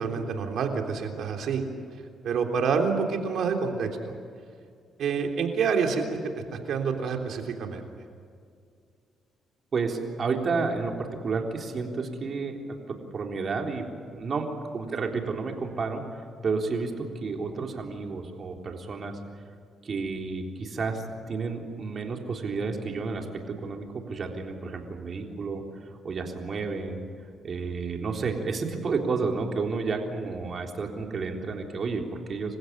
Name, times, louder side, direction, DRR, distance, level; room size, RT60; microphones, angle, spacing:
voice 1, 0.0-1.6 2.2-4.1 5.0-6.1 6.5-7.8, right 5 dB, 70° right, 3 dB, 3.4 m, -27 dB
voice 2, 9.7-16.0 16.4-19.2 19.8-25.6 26.0-27.0 27.4-32.6, right 4 dB, 45° right, 2 dB, 3.7 m, -31 dB
28.0 x 16.0 x 9.9 m, 2.3 s
cardioid pair, 90°, 0 cm